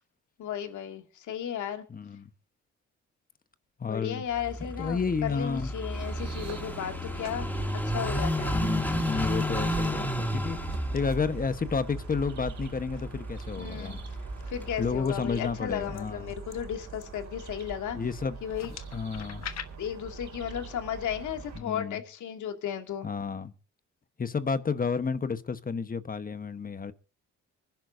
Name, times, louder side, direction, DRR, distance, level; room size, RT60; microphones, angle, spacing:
voice 1, 0.4-1.9 3.8-8.6 13.6-14.0 14.5-18.0 18.4-18.7 19.8-23.1, left 9 dB, 75° left, 2.3 m, -35 dB
voice 2, 1.9-2.3 3.8-4.2 4.8-5.7 8.5-10.6 10.9-14.0 14.8-16.3 17.9-18.4 18.6-19.5 21.5-22.0 23.0-23.5 24.2-26.9, left 5 dB, 30° left, 1.1 m, -31 dB
Car passing by / Idling, 4.3-15.0, equal, 5° left, 2.5 m, -33 dB
sound 1, 5.9-21.6, right 5 dB, 65° right, 3.6 m, -42 dB
sound 2, 8.8-9.0 9.4-9.9 10.7-11.0 11.9-12.1 12.9-13.4 14.0-14.4 15.0-17.7 18.4-19.6, left 9 dB, 60° left, 1.4 m, -46 dB
24.5 x 11.0 x 2.7 m
cardioid pair, 90°, 30 cm